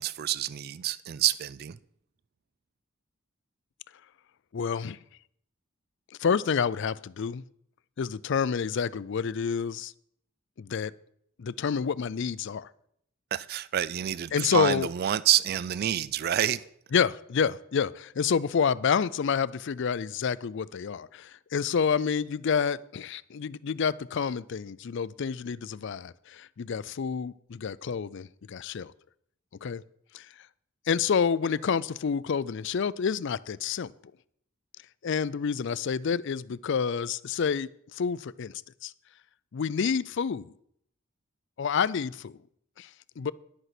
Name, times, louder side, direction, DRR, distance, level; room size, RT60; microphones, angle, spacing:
voice 1, 0.0-1.8 13.3-16.7, right 11 dB, 45° right, 18 dB, 0.3 m, -28 dB
voice 2, 4.5-5.0 6.2-7.4 8.0-9.9 10.6-10.9 11.4-12.7 14.3-14.9 16.9-28.9 29.6-29.8 30.1-30.3 30.9-33.9 35.0-38.5 38.8-38.9 39.5-40.5 41.6-42.3 42.8-42.9 43.2-43.3, left 6 dB, 60° left, 19 dB, 0.4 m, -28 dB
11.0 x 8.1 x 5.9 m, 0.70 s
head